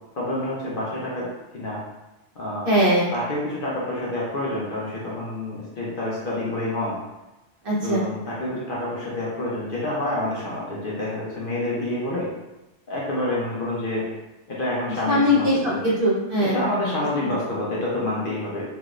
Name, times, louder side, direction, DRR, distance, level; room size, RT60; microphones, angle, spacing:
voice 1, 0.2-1.8 2.4-2.7 3.1-7.0 7.8-12.3 12.9-14.1 14.5-15.8 16.4-18.6, left 1 dB, 55° left, -6 dB, 0.8 m, -28 dB
voice 2, 2.6-3.1 7.6-8.0 15.1-16.6, equal, 50° right, -7 dB, 1.1 m, -20 dB
3.0 x 3.0 x 2.4 m, 1.0 s
omnidirectional pair, 1.2 m